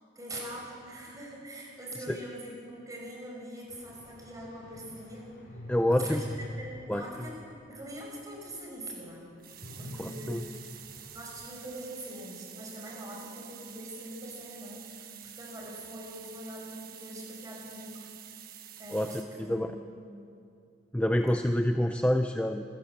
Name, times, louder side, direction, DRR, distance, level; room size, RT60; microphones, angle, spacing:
voice 1, 0.2-5.3 5.6-9.3 9.8-10.7 11.1-18.0 18.8-19.6, right 1 dB, 20° right, -2 dB, 5.6 m, -43 dB
sound 1, 3.7-8.0 8.4-8.5 9.6-11.3, equal, 60° left, 4.7 m, -43 dB
voice 2, 5.7-6.2 6.9-7.1 10.0-10.4 18.9-19.7 20.9-22.6, left 1 dB, 5° left, 6 dB, 0.6 m, -27 dB
sound 2, 9.4-19.2, right 10 dB, 50° right, 1.4 m, -48 dB
27.5 x 15.0 x 7.4 m, 2.5 s
head